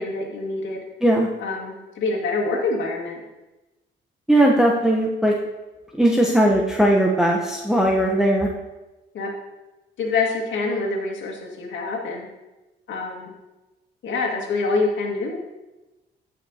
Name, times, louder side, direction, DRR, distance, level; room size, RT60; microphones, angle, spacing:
voice 1, 0.0-0.9 1.4-3.2 8.1-8.3 9.1-9.3 10.0-12.3 12.9-13.3 14.0-15.4, left 3 dB, 75° left, -1 dB, 1.9 m, -26 dB
voice 2, 4.3-5.3 6.0-8.5, right 1 dB, 5° right, -2 dB, 0.8 m, -18 dB
13.5 x 5.6 x 2.8 m, 1.1 s
cardioid pair, 90°, 20 cm